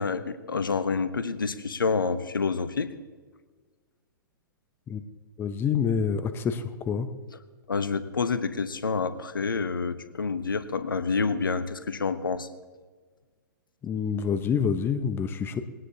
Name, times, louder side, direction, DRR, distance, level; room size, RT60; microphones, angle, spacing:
voice 1, 0.0-2.9 7.7-12.5, left 4 dB, 80° left, 12 dB, 1.0 m, -28 dB
voice 2, 5.4-7.1 13.8-15.6, left 6 dB, 20° left, 10 dB, 0.9 m, -27 dB
21.5 x 17.5 x 2.8 m, 1.4 s
figure-of-eight pair, 110°, 11 cm